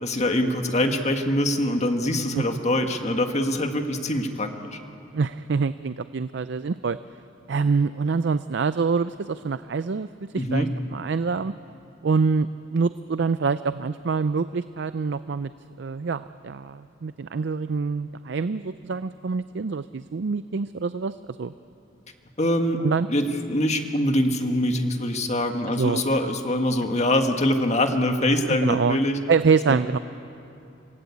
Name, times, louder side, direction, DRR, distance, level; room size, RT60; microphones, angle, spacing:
voice 1, 0.0-4.8 10.4-10.7 22.4-22.8 23.1-29.2 29.7-29.8, left 1 dB, 35° left, 5 dB, 1.8 m, -24 dB
voice 2, 5.1-7.0 7.5-10.1 10.3-11.5 12.0-15.5 15.8-21.5 22.8-23.1 25.7-26.0 28.5-29.0 29.3-30.0, right 5 dB, 65° right, 13 dB, 0.5 m, -25 dB
27.0 x 18.0 x 8.5 m, 2.8 s
head